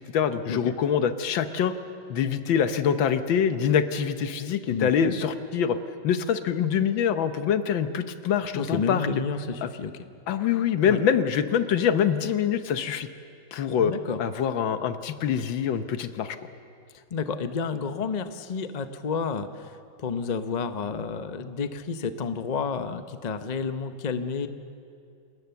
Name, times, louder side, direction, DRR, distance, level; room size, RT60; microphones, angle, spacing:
voice 1, 0.0-1.7 2.1-5.8 6.0-9.1 9.6-9.7 10.3-13.1 13.5-13.9 14.2-16.4, left 8 dB, 75° left, 10 dB, 1.7 m, -25 dB
voice 2, 4.7-5.1 8.5-9.9 10.9-11.0 13.8-14.2 17.1-24.5, left 5 dB, 50° left, 9 dB, 0.5 m, -30 dB
28.0 x 19.0 x 7.1 m, 2.5 s
omnidirectional pair, 2.2 m